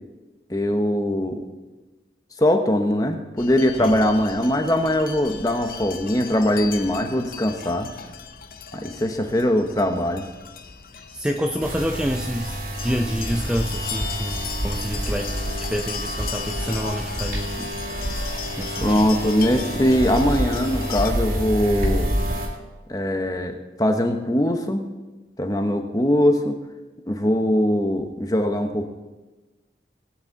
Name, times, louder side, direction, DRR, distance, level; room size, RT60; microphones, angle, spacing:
voice 1, 0.5-1.4 2.4-7.9 8.7-10.2 18.8-22.1 22.9-24.8 25.4-26.6 27.1-28.9, left 1 dB, 20° left, 5 dB, 1.1 m, -21 dB
sound 1, 3.4-21.1, left 6 dB, 50° left, 0.7 m, -37 dB
voice 2, 10.9-15.3 15.7-17.8 18.6-19.0, equal, 5° right, 2 dB, 0.5 m, -28 dB
sound 2, 11.6-22.5, equal, 50° right, 2.5 m, -28 dB
19.0 x 9.2 x 4.0 m, 1.2 s
head